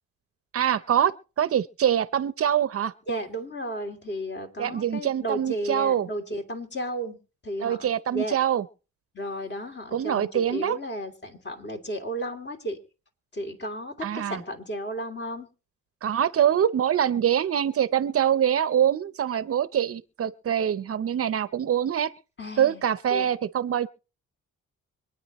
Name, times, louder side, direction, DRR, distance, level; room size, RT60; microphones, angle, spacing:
voice 1, 0.5-2.9 4.6-6.1 7.6-8.6 9.9-10.8 14.0-14.4 16.0-22.1 22.6-23.9, right 9 dB, 50° right, 0.8 m, -24 dB
voice 2, 3.1-7.2 7.4-8.4 9.1-12.8 13.3-15.5 22.4-22.8 23.1-23.3, equal, 35° left, 3.0 m, -33 dB
26.0 x 9.6 x 3.1 m
cardioid pair, 90°, 30 cm